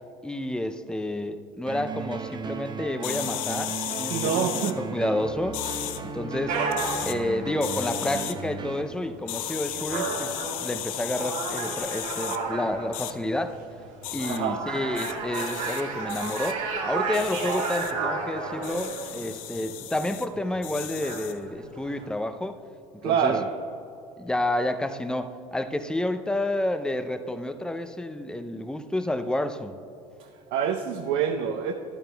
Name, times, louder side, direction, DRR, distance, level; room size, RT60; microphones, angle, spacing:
voice 1, 0.2-4.5 4.8-5.6 6.0-6.6 7.0-13.6 14.1-22.6 23.0-23.4 24.2-29.8, left 1 dB, 5° left, 9 dB, 0.5 m, -30 dB
sound 1, 1.7-8.8, right 5 dB, 25° right, 0.8 m, -36 dB
sound 2, 3.0-4.7 5.5-6.0 6.7-7.2 7.6-8.3 9.3-12.4 12.9-13.1 14.0-14.4 15.0-15.8 16.1-16.5 17.1-17.9 18.6-20.3 20.6-21.4, left 14 dB, 80° left, 0.5 m, -34 dB
voice 2, 4.1-4.8 14.3-14.6 23.0-23.5 30.2-31.7, right 7 dB, 65° right, 4 dB, 0.7 m, -26 dB
sound 3, 6.5-22.1, right 4 dB, 80° right, 1.8 m, -33 dB
13.0 x 11.5 x 2.3 m, 2.9 s
hypercardioid pair, 80°, 17 cm